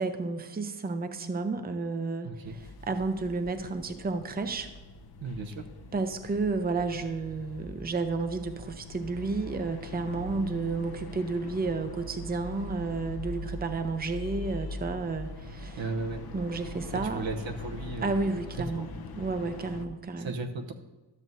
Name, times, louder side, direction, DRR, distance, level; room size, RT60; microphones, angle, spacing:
voice 1, 0.0-2.3 2.8-4.7 5.9-15.8 16.3-17.2 18.0-18.9 19.1-20.3, right 3 dB, 20° right, 8 dB, 0.6 m, -31 dB
voice 2, 2.2-2.6 5.2-5.6 15.8-16.2 16.9-18.9 20.2-20.7, right 3 dB, 90° right, 4 dB, 0.9 m, -36 dB
sound 1, 2.4-19.8, left 2 dB, 55° left, 0.7 m, -42 dB
12.5 x 7.4 x 2.7 m, 1.2 s
wide cardioid pair, 125°, 44 cm